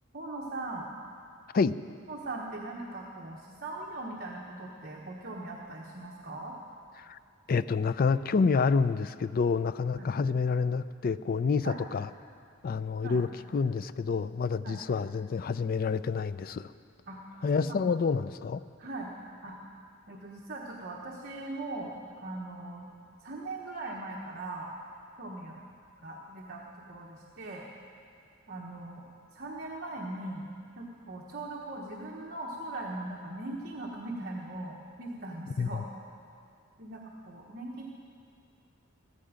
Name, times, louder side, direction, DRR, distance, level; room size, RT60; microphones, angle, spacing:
voice 1, 0.1-0.8 2.1-6.5 9.9-10.1 11.6-11.8 13.0-13.2 14.6-14.8 17.1-17.2 17.6-17.7 18.8-19.1 19.4-19.7 20.1-22.9 23.2-24.7 25.2-25.6 26.0-27.6 28.5-29.0 29.3-30.5 30.8-35.8 36.8-37.9, right 2 dB, 50° right, -2 dB, 1.2 m, -40 dB
voice 2, 7.5-12.1 12.6-16.7 17.4-18.6 35.6-35.8, left 5 dB, 45° left, 15 dB, 0.4 m, -28 dB
15.0 x 14.0 x 5.1 m, 2.4 s
head